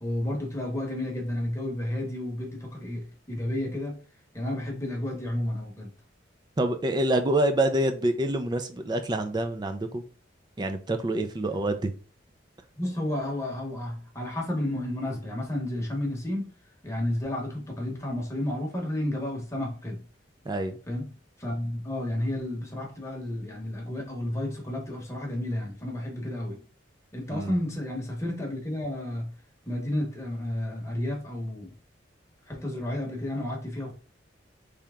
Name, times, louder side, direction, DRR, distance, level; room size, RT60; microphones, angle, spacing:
voice 1, 0.0-4.0 4.3-5.9 12.8-16.5 16.8-20.0 20.9-21.1 21.4-26.6 27.1-29.3 29.7-31.7 32.5-33.9, left 1 dB, 15° left, 1.0 m, -31 dB
voice 2, 6.6-10.0 10.6-11.9 20.4-20.8 27.3-27.6, right 1 dB, 25° right, 0.4 m, -26 dB
3.4 x 2.9 x 3.6 m
head